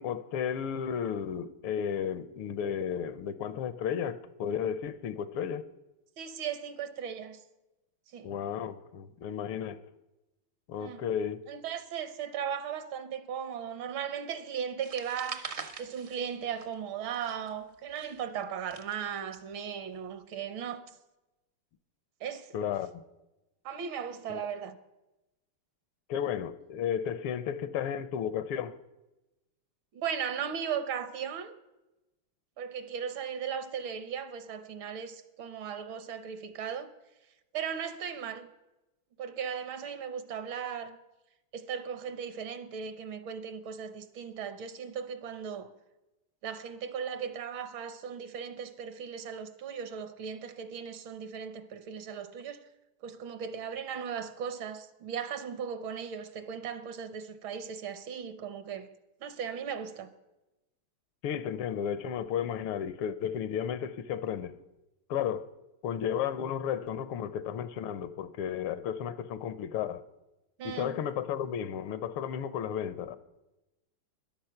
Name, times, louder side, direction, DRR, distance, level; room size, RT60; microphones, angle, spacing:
voice 1, 0.0-5.7 8.2-9.8 10.7-11.4 22.5-22.9 24.3-24.4 26.1-28.7 61.2-64.6 65.1-65.5 65.8-70.0 70.6-73.2, left 8 dB, 85° left, 1.6 m, -33 dB
voice 2, 6.2-7.4 8.1-8.3 10.8-11.1 11.5-15.5 15.8-20.8 22.2-22.8 23.6-24.8 29.9-31.5 32.6-36.9 37.5-38.5 39.2-41.0 41.5-45.7 46.4-52.6 53.0-58.9 59.2-60.1 70.6-70.9, right 7 dB, 70° right, 1.6 m, -37 dB
sound 1, 14.8-16.9 17.1-19.4, right 5 dB, 55° right, 0.7 m, -43 dB
13.5 x 10.5 x 5.8 m
omnidirectional pair, 2.4 m